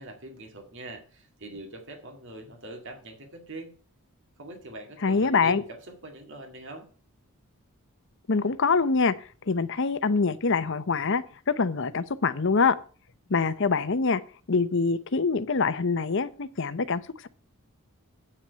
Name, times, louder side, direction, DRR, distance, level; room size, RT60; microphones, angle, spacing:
voice 1, 0.0-3.7 4.4-6.9, right 2 dB, 55° right, 2.1 m, -43 dB
voice 2, 5.0-5.6 8.3-9.1 9.5-12.8 13.3-14.2 14.5-17.3, left 4 dB, 55° left, 0.7 m, -25 dB
8.9 x 6.2 x 6.8 m
head